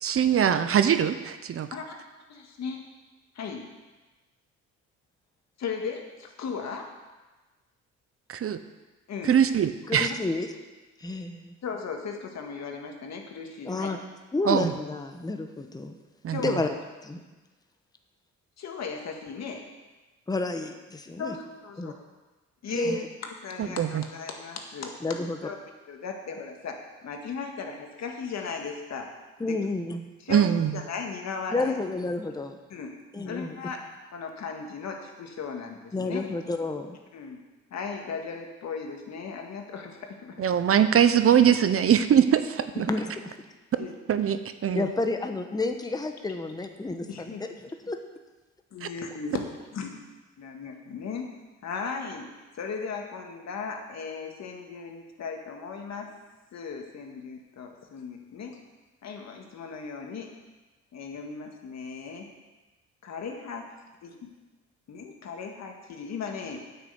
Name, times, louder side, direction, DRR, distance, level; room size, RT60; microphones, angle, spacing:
voice 1, 0.0-1.7 8.3-8.6 9.2-10.1 14.5-14.7 16.2-16.6 23.6-24.0 30.3-30.8 40.4-42.9 43.8-44.9 48.8-48.9, right 9 dB, 50° right, 11 dB, 0.7 m, -22 dB
voice 2, 2.3-2.8 3.4-3.7 5.6-6.9 9.1-9.4 11.6-13.9 16.3-16.7 18.6-19.6 21.2-21.9 22.6-25.0 25.4-25.6 25.9-26.8 27.0-29.1 29.4-29.6 30.2-30.5 30.7-31.8 32.7-32.9 33.3-33.8 34.1-36.2 37.1-37.4 37.7-40.4 43.8-43.9 47.1-47.4 48.7-49.9 50.4-51.3 51.6-52.3 52.6-56.1 56.5-58.6 59.0-60.3 60.9-62.3 63.0-63.7 64.0-64.3 64.9-66.7, left 5 dB, 60° left, 2 dB, 1.9 m, -37 dB
voice 3, 9.9-10.5 11.0-11.5 13.6-14.0 14.3-15.9 16.4-16.7 17.0-17.2 20.3-21.4 21.8-21.9 22.7-23.1 23.7-23.8 25.0-25.4 29.4-30.1 31.5-32.6 33.1-33.6 35.9-37.0 42.9-43.1 44.7-47.5 47.9-48.0, left 2 dB, 15° left, 5 dB, 1.0 m, -30 dB
9.3 x 6.5 x 8.1 m, 1.2 s
cardioid pair, 90°, 30 cm